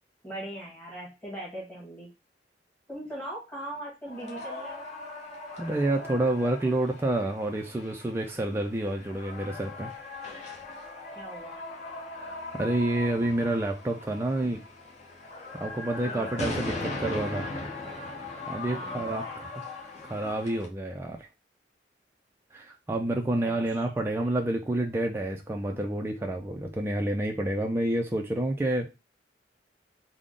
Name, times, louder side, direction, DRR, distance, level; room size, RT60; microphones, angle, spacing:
voice 1, 0.2-2.1 2.9-4.9 11.1-11.6 16.0-16.4 18.6-19.5 23.4-24.3, right 1 dB, 10° left, -6 dB, 1.4 m, -40 dB
sound 1, 4.1-20.7, left 2 dB, 40° left, 1.0 m, -39 dB
voice 2, 5.6-9.9 12.2-14.6 15.5-17.5 18.5-19.5 20.0-21.3 22.5-28.9, right 1 dB, 15° right, 2 dB, 0.3 m, -29 dB
3.6 x 2.1 x 3.6 m, 0.26 s
head